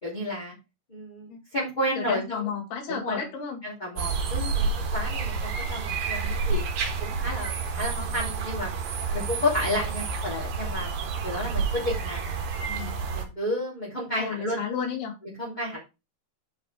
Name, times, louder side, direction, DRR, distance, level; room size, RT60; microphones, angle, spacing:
voice 1, 0.0-0.5 0.9-2.5 2.9-3.2 3.6-6.6 7.0-8.8 9.1-12.2 12.8-14.6 15.4-15.8, left 1 dB, 10° left, 3.0 m, -31 dB
voice 2, 2.0-3.6 12.7-13.0 14.2-15.1, left 6 dB, 75° left, 4.3 m, -32 dB
sound 1, 4.0-13.3, right 4 dB, 65° right, 3.1 m, -29 dB
8.0 x 5.4 x 4.9 m
omnidirectional pair, 4.6 m